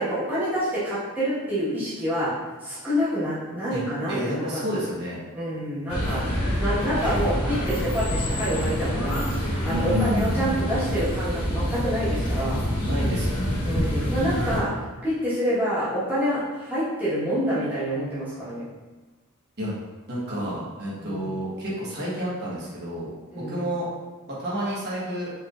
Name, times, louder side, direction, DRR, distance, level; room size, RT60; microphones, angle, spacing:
voice 1, 0.0-2.3 2.6-4.6 5.3-6.3 6.6-9.2 9.6-12.6 13.6-14.7 15.0-18.6 21.0-21.3 23.3-23.6, equal, 5° right, -12 dB, 1.3 m, -27 dB
voice 2, 4.1-5.2 9.7-10.4 12.8-13.8 19.6-19.7 20.1-23.9 24.3-25.3, equal, 45° right, -7 dB, 1.2 m, -30 dB
sound 1, 5.9-14.6, equal, 90° left, 1.0 m, -26 dB
4.5 x 3.2 x 2.5 m, 1.3 s
head